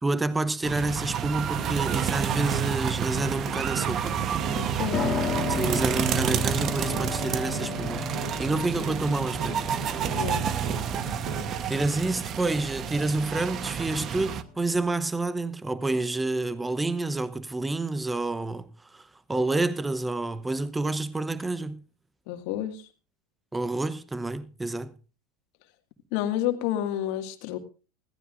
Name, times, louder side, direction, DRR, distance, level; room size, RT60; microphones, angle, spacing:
voice 1, 0.0-4.2 5.5-8.1 8.4-9.7 11.7-21.8 23.5-25.0, right 2 dB, 10° right, 0.9 m, -29 dB
sound 1, 0.6-14.4, right 8 dB, 40° right, 1.0 m, -29 dB
sound 2, 1.6-11.5, right 4 dB, 65° right, 3.7 m, -36 dB
voice 2, 4.5-5.1 10.1-10.5 22.3-22.9 26.1-27.6, left 11 dB, 60° left, 1.9 m, -30 dB
Piano, 4.9-14.9, left 7 dB, 35° left, 2.2 m, -36 dB
20.5 x 14.5 x 2.6 m
hypercardioid pair, 90°, 0 cm